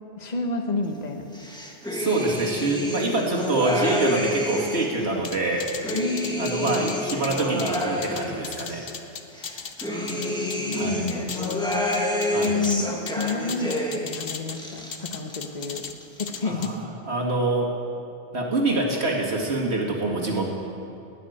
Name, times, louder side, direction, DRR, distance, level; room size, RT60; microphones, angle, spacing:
voice 1, 0.2-1.3 5.9-6.7 7.1-7.3 9.9-11.9 12.4-12.9 13.2-15.8 16.2-16.8, left 3 dB, 40° left, 4 dB, 1.3 m, -30 dB
sound 1, 1.3-5.0 5.4-8.9 9.3-14.2 14.5-15.3 15.6-16.4, equal, 5° left, 1.5 m, -29 dB
voice 2, 1.9-5.7 6.4-8.9 10.7-11.0 12.3-12.6 16.4-16.8 17.1-17.7 18.3-20.4, right 2 dB, 70° right, -2 dB, 2.4 m, -25 dB
sound 2, 5.2-10.8 11.1-12.8 13.1-14.6 14.9-15.9 16.2-16.7, left 6 dB, 60° left, 1.1 m, -36 dB
20.0 x 6.6 x 9.4 m, 2.6 s
omnidirectional pair, 1.1 m